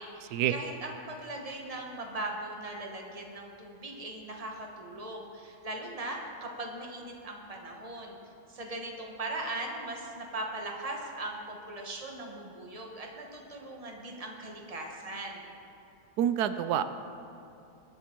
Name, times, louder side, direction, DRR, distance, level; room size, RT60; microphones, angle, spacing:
voice 1, 0.0-8.2 8.5-15.4, right 2 dB, 25° right, 1 dB, 1.3 m, -39 dB
voice 2, 16.2-16.8, right 10 dB, 90° right, 11 dB, 1.1 m, -27 dB
19.0 x 7.1 x 4.5 m, 2.8 s
omnidirectional pair, 1.6 m